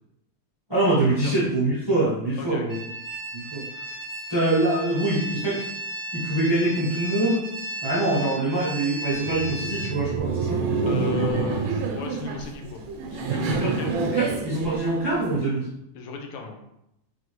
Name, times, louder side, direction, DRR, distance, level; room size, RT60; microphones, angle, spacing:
voice 1, 0.7-2.8 3.3-3.6 4.3-5.6 6.1-7.4 7.8-11.2 13.4-15.7, right 2 dB, 25° right, -9 dB, 0.5 m, -24 dB
sound 1, 2.7-9.9, right 1 dB, 55° left, 0.4 m, -35 dB
Laughter, 9.1-15.4, right 4 dB, 80° right, 1.4 m, -28 dB
voice 2, 10.8-12.8 13.1-14.1 15.9-16.6, left 6 dB, 80° left, 3 dB, 1.5 m, -35 dB
4.2 x 3.3 x 3.0 m, 0.82 s
omnidirectional pair, 2.4 m